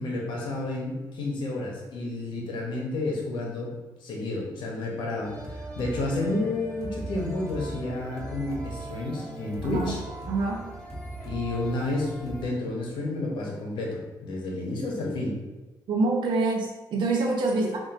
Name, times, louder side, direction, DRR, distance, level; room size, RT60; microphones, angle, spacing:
voice 1, 0.0-3.7 4.0-10.0 11.3-15.4 17.6-17.7, left 2 dB, 85° left, -2 dB, 1.0 m, -31 dB
sound 1, 5.2-12.4, right 2 dB, 5° left, 0.9 m, -38 dB
voice 2, 9.6-10.0 10.3-10.7 15.9-17.8, right 3 dB, 80° right, -1 dB, 0.8 m, -26 dB
3.7 x 2.5 x 3.6 m, 1.1 s
cardioid pair, 110°, 8 cm